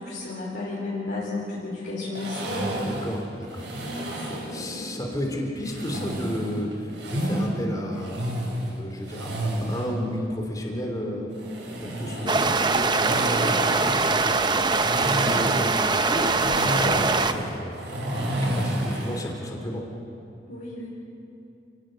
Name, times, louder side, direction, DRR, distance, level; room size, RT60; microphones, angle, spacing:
voice 1, 0.0-2.7 3.8-5.1 5.6-5.7 11.0-11.3 20.5-20.9, left 2 dB, 65° left, -8 dB, 4.9 m, -34 dB
sound 1, 2.1-4.5 5.6-7.5 7.9-9.9 11.3-19.2, right 1 dB, 70° right, 6.4 m, -30 dB
voice 2, 2.7-3.7 4.5-8.2 8.8-11.3 11.8-19.8, equal, 20° left, 0 dB, 2.9 m, -33 dB
sound 2, 12.3-17.3, right 3 dB, 25° right, 0.7 m, -23 dB
29.0 x 18.0 x 6.4 m, 2.7 s
head